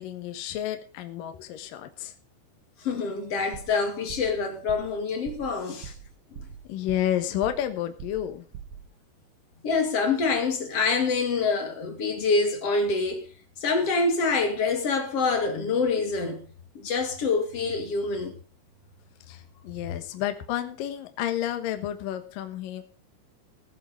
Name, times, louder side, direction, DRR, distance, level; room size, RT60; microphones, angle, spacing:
voice 1, 0.0-2.1 6.7-8.5 19.3-22.8, left 11 dB, 65° left, 2.3 m, -31 dB
voice 2, 2.8-5.9 6.3-6.5 9.6-13.3 13.6-16.4 16.7-18.3, left 4 dB, 45° left, 2.2 m, -26 dB
sound 1, 3.5-3.8 4.1-4.4 4.7-5.0 5.2-5.5 5.8-6.1 6.3-7.2 7.4-7.7 8.0-8.3 8.5-8.8, right 8 dB, 70° right, 4.3 m, -41 dB
17.0 x 7.8 x 5.2 m
omnidirectional pair, 5.6 m